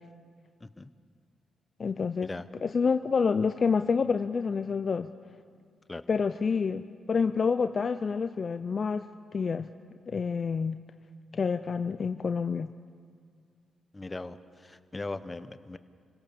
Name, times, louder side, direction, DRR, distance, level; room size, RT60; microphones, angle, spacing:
voice 1, 1.8-2.3 2.6-5.1 6.1-9.7 10.1-10.8 11.3-12.7, left 5 dB, 50° left, 10 dB, 0.6 m, -28 dB
voice 2, 13.9-15.8, left 2 dB, 25° left, 12 dB, 1.1 m, -39 dB
26.5 x 17.0 x 6.9 m, 2.1 s
supercardioid pair, 55°, 0 cm